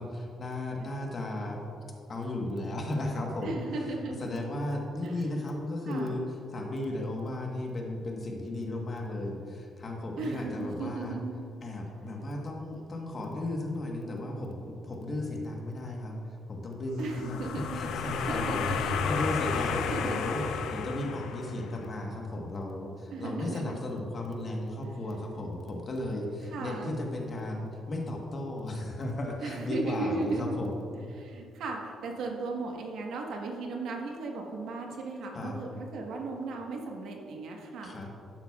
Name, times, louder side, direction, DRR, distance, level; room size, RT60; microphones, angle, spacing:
voice 1, 0.0-1.6 2.1-3.6 4.2-6.2 6.5-11.2 11.6-16.2 16.5-17.5 17.7-20.4 20.7-30.8 35.3-35.6 37.8-38.1, left 1 dB, 35° left, 1 dB, 1.2 m, -35 dB
voice 2, 3.4-4.2 5.0-5.5 5.9-6.2 10.2-11.3 17.0-17.8 18.3-19.0 19.5-20.2 23.1-23.8 24.8-25.0 26.5-27.0 29.4-30.6 30.9-38.1, right 3 dB, 75° right, 1 dB, 1.3 m, -36 dB
sound 1, 17.0-21.8, left 6 dB, 90° left, 0.5 m, -32 dB
11.5 x 8.8 x 2.4 m, 2.5 s
cardioid pair, 145°, 0 cm